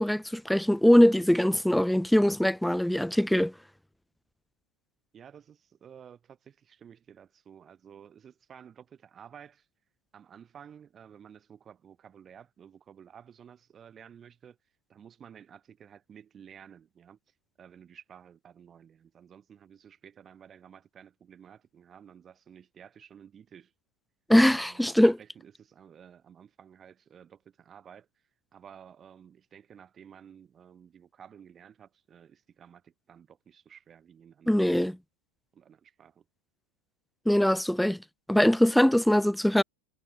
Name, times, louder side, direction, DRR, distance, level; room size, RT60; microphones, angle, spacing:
voice 1, 0.0-3.5 24.3-25.1 34.5-35.0 37.3-38.0 38.3-39.6, equal, ahead, 0.3 m, -22 dB
voice 2, 5.1-9.7 10.1-23.7 24.5-35.0 35.5-36.2, right 8 dB, 25° right, 6.4 m, -53 dB
hypercardioid pair, 100°, 0 cm